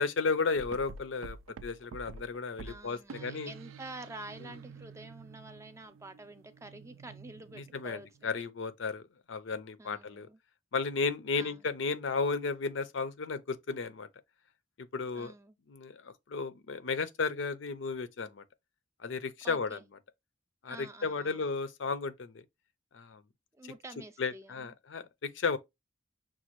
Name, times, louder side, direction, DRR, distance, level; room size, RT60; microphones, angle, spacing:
voice 1, 0.0-1.4 1.6-3.5 7.6-10.3 10.7-14.1 14.8-15.3 15.7-18.4 19.0-19.8 20.6-22.4 22.9-23.2 24.2-25.6, left 4 dB, 70° left, 0.5 m, -34 dB
sound 1, 0.6-8.3, right 4 dB, 85° right, 0.3 m, -49 dB
voice 2, 2.6-8.5 9.8-10.4 11.3-11.6 15.1-15.6 19.4-19.9 20.7-21.4 23.5-24.7, right 2 dB, 15° right, 0.4 m, -48 dB
6.0 x 2.4 x 2.9 m
head